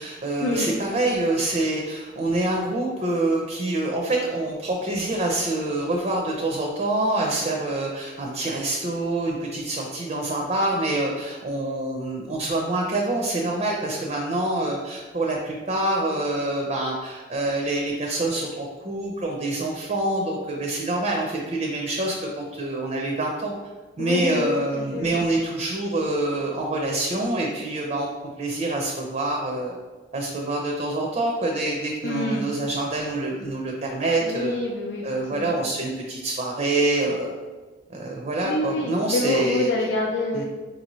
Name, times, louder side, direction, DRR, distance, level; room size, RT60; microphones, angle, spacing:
voice 1, 0.0-23.5 24.0-28.1 28.4-29.8 30.1-34.6 35.0-37.4 37.9-39.7 40.3-40.4, right 2 dB, 35° right, 0 dB, 0.5 m, -26 dB
voice 2, 24.0-25.3 32.0-32.5 34.2-35.6 38.4-40.4, left 2 dB, 65° left, -2 dB, 0.5 m, -27 dB
4.9 x 2.6 x 3.0 m, 1.3 s
head